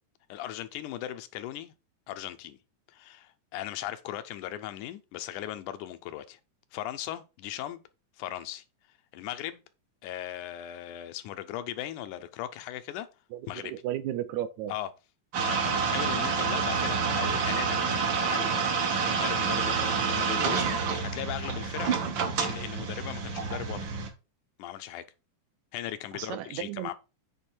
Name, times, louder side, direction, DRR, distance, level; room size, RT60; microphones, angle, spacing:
voice 1, 0.3-1.7 2.1-2.6 2.9-6.4 6.7-7.8 8.2-8.6 9.1-9.6 10.0-13.1 13.5-13.7 14.7-14.9 15.4-18.5 19.0-21.9 22.4-23.9 24.6-25.0 25.7-26.9, left 12 dB, 85° left, 2.2 m, -38 dB
voice 2, 13.3-14.7 26.1-26.9, right 11 dB, 80° right, 1.9 m, -34 dB
sound 1, 15.3-24.1, right 5 dB, 60° right, 1.3 m, -28 dB
8.1 x 3.5 x 4.3 m
omnidirectional pair, 3.5 m